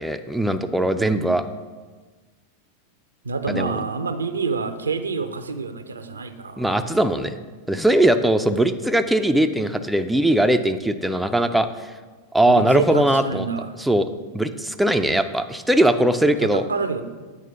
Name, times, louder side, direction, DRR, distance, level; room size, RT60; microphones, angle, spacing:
voice 1, 0.0-1.5 3.5-3.8 6.6-7.4 7.7-11.9 12.3-13.5 13.8-14.1 14.3-16.6, right 1 dB, 5° right, 7 dB, 0.3 m, -20 dB
voice 2, 0.9-1.4 3.2-6.6 12.5-13.7 15.9-16.1 16.4-17.0, right 4 dB, 75° right, 10 dB, 0.5 m, -28 dB
8.2 x 4.5 x 5.6 m, 1.4 s
figure-of-eight pair, 90°, 0 cm